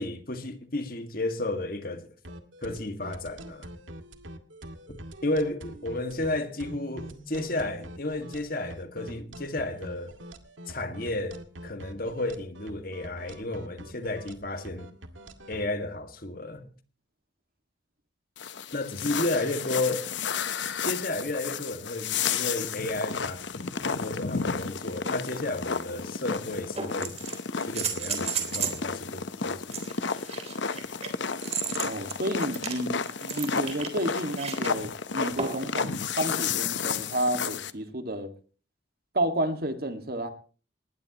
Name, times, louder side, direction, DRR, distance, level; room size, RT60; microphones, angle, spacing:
voice 1, 0.0-2.1 2.6-3.7 5.2-10.1 10.7-14.9 15.5-16.7 18.7-20.1 20.8-23.5 24.0-27.2 27.7-29.9, left 2 dB, 50° left, 1.8 m, -32 dB
sound 1, 2.2-15.6, right 1 dB, 90° right, 2.1 m, -44 dB
sound 2, 18.4-37.7, left 6 dB, 70° left, 0.9 m, -32 dB
sound 3, 25.7-25.8 26.7-28.8 29.7-34.7 35.4-35.7 37.4-37.5, right 7 dB, 35° right, 3.4 m, -34 dB
voice 2, 31.8-38.3 39.1-40.3, right 1 dB, 50° right, 2.0 m, -31 dB
20.0 x 19.5 x 3.0 m
head